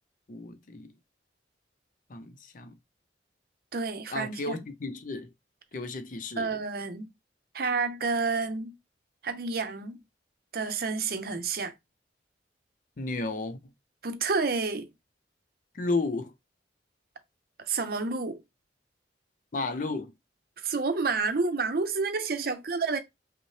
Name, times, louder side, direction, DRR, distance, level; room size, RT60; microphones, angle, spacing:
voice 1, 0.3-0.9 2.1-2.7 4.1-5.3 5.7-6.6 13.0-13.6 15.7-16.3 19.5-20.1, left 3 dB, 50° left, 0.6 m, -33 dB
voice 2, 3.7-4.6 6.4-7.1 7.5-8.7 9.2-10.0 10.5-11.7 14.0-14.9 17.6-18.4 20.6-23.0, right 4 dB, 55° right, 0.6 m, -29 dB
5.4 x 2.1 x 3.2 m
head